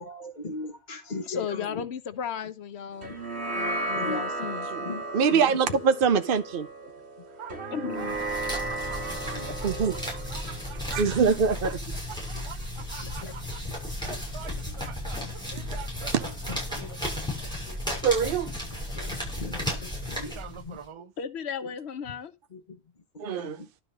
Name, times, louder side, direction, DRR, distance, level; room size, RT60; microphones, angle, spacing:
voice 1, 0.0-1.9 3.9-4.3 4.8-5.6 8.9-9.5 11.0-11.1 12.3-12.5 13.0-13.4 14.1-14.8 15.5-15.6 16.5-17.0 17.7-17.8 18.9-21.1 21.6-21.7 22.5-22.8 23.1-23.7, left 2 dB, 45° left, 1.3 m, -40 dB
voice 2, 1.3-3.1 3.5-4.7 7.7-8.2 13.2-13.3 21.2-22.3, left 8 dB, 85° left, 1.1 m, -34 dB
sound 1, 3.0-11.7, right 2 dB, 80° right, 1.9 m, -35 dB
voice 3, 5.1-6.7 8.8-9.0 9.2-10.0 10.9-11.8 16.1-16.2 18.0-18.5 23.2-23.6, right 6 dB, 60° right, 0.9 m, -24 dB
voice 4, 7.4-9.7 10.1-11.0 12.1-13.6 14.0-16.1 16.4-17.8 20.2-21.1, right 8 dB, 35° right, 0.6 m, -45 dB
sound 2, 8.0-20.8, left 1 dB, 5° left, 6.7 m, -34 dB
12.0 x 4.1 x 5.2 m
omnidirectional pair, 1.1 m